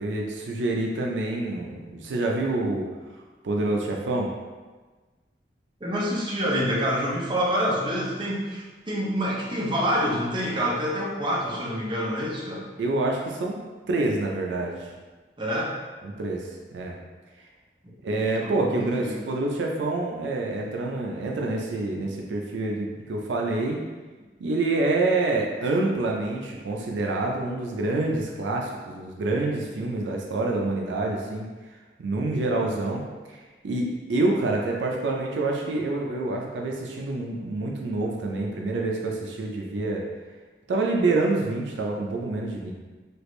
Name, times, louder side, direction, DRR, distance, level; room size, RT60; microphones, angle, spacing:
voice 1, 0.0-2.9 3.4-4.3 12.8-13.6 13.9-14.9 16.0-17.0 18.0-23.8 24.4-31.5 32.0-33.4 33.6-40.0 40.7-42.7, right 2 dB, 75° right, 0 dB, 0.4 m, -27 dB
voice 2, 5.8-12.7 15.4-15.7 18.4-19.2 32.5-32.7, equal, 25° right, -4 dB, 0.6 m, -27 dB
3.3 x 2.4 x 3.1 m, 1.3 s
head